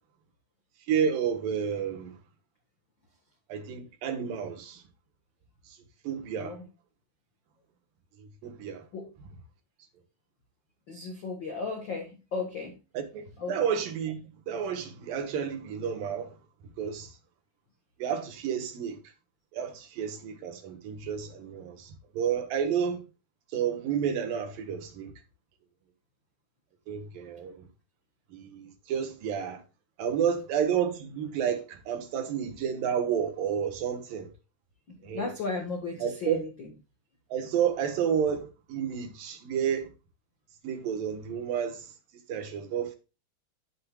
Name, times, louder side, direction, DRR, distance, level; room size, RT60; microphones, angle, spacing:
voice 1, 0.9-2.1 3.5-4.8 6.0-6.6 8.2-8.8 12.9-14.2 14.5-16.4 16.8-17.1 18.0-19.0 19.5-23.0 23.5-25.1 26.9-27.7 28.3-29.6 30.0-34.3 35.0-35.3 36.0-36.4 37.3-39.9 40.6-41.9 42.3-43.0, right 8 dB, 75° right, 2.9 m, -30 dB
voice 2, 10.9-12.7 13.4-13.5 34.9-36.7, left 4 dB, 60° left, 1.2 m, -35 dB
11.5 x 7.7 x 2.3 m
omnidirectional pair, 4.2 m